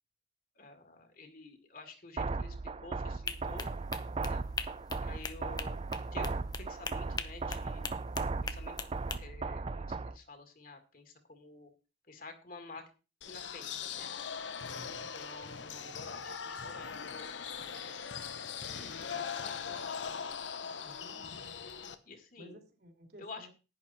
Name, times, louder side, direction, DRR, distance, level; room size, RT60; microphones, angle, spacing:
voice 1, 0.6-3.7 4.2-4.4 5.0-5.8 6.1-8.1 8.4-8.9 9.1-11.7 12.1-12.8 13.3-14.1 15.1-17.4 18.5-20.0 20.8-22.6 23.2-23.5, left 3 dB, 50° left, 6 dB, 2.0 m, -51 dB
sound 1, 2.2-10.2, right 3 dB, 30° right, 0.4 m, -37 dB
sound 2, 3.3-9.2, left 4 dB, 20° left, 0.7 m, -41 dB
sound 3, 13.2-21.9, left 6 dB, 85° left, 1.0 m, -40 dB
voice 2, 14.7-15.1 20.8-21.4 22.4-23.5, equal, 60° right, 4 dB, 3.0 m, -54 dB
11.0 x 9.8 x 4.2 m, 0.33 s
head